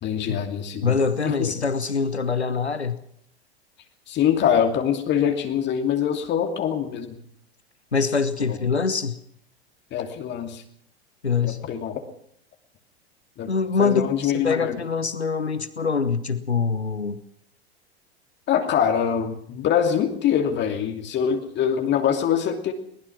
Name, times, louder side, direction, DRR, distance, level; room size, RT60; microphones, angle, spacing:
voice 1, 0.0-1.5 4.1-7.2 8.5-8.6 9.9-10.6 11.4-12.0 13.4-13.5 13.8-14.8 18.5-22.7, left 8 dB, 35° left, 5 dB, 2.7 m, -24 dB
voice 2, 0.8-3.0 7.9-9.2 11.2-11.6 13.5-17.2, left 5 dB, 90° left, 13 dB, 1.1 m, -24 dB
21.5 x 20.0 x 6.1 m, 0.69 s
figure-of-eight pair, 90°, 32 cm